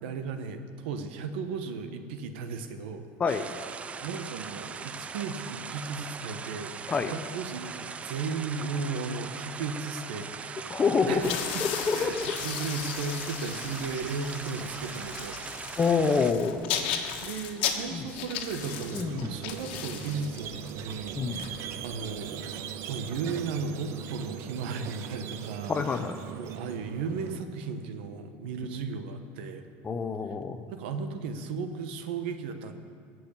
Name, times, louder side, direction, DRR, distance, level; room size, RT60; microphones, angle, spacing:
voice 1, 0.0-3.1 4.0-10.8 11.1-11.7 11.9-15.4 17.2-22.6 22.9-29.7 30.7-32.7, right 5 dB, 85° right, 8 dB, 1.2 m, -35 dB
sound 1, 3.3-16.3, right 5 dB, 20° right, 0.5 m, -40 dB
voice 2, 10.7-12.3 15.8-16.6 17.9-18.0 18.9-19.4 21.2-21.5 25.7-26.2 29.8-30.6, left 5 dB, 25° left, 9 dB, 0.8 m, -27 dB
sound 2, 11.1-22.2, left 8 dB, 90° left, 1.4 m, -36 dB
Squeak, 18.6-27.4, right 9 dB, 55° right, 0.7 m, -40 dB
16.5 x 6.3 x 8.7 m, 2.1 s
supercardioid pair, 130°, 6 cm